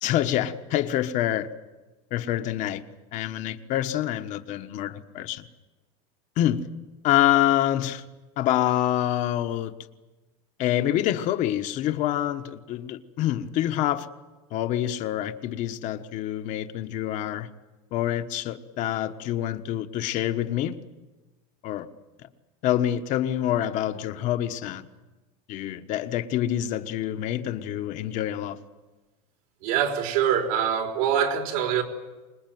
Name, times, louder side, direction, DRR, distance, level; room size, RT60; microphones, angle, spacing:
voice 1, 0.0-1.5 2.1-2.8 3.1-5.4 6.4-6.7 7.0-8.0 8.4-9.7 10.6-14.1 14.5-17.5 17.9-20.8 21.6-21.9 22.6-24.9 25.5-28.6, left 12 dB, 45° left, 1.2 m, -26 dB
voice 2, 29.6-31.8, right 9 dB, 75° right, 4.5 m, -24 dB
25.5 x 20.5 x 9.3 m
supercardioid pair, 155°, 18 cm